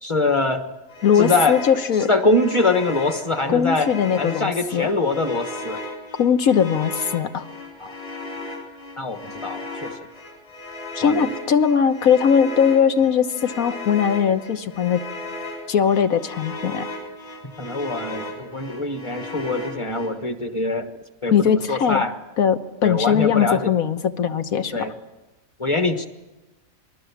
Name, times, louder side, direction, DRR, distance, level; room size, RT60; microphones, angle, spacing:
voice 1, 0.0-0.6 1.2-1.6 2.0-3.9 4.2-5.8 7.8-7.9 9.0-9.9 11.0-11.3 17.4-20.9 21.2-22.1 22.8-23.7 24.7-24.9 25.6-26.1, left 2 dB, 20° left, 8 dB, 1.3 m, -23 dB
sound 1, 0.9-20.1, left 2 dB, 45° left, 4.1 m, -36 dB
voice 2, 1.0-2.1 3.5-4.9 6.2-7.4 10.9-15.0 15.7-16.9 21.3-22.0 22.4-24.7, left 7 dB, 80° left, 9 dB, 1.5 m, -20 dB
27.5 x 20.0 x 7.2 m, 1.1 s
omnidirectional pair, 1.5 m